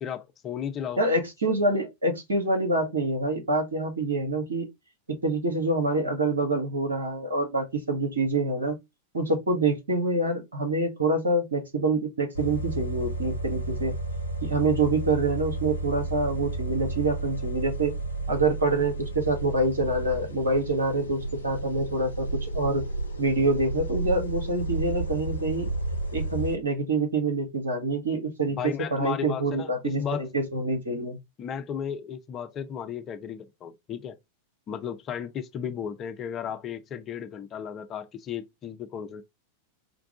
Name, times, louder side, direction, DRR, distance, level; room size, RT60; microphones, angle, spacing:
voice 1, 0.0-1.0 28.6-30.3 31.4-34.2 34.7-39.2, left 8 dB, 30° left, 0.6 m, -34 dB
voice 2, 1.0-4.7 5.1-8.8 9.1-13.9 14.4-17.9 18.3-22.8 23.2-25.7 26.1-31.2, right 2 dB, 70° right, 1.2 m, -26 dB
sound 1, 12.3-26.6, right 2 dB, 75° left, 0.5 m, -32 dB
4.5 x 2.4 x 3.6 m
figure-of-eight pair, 90°, 0 cm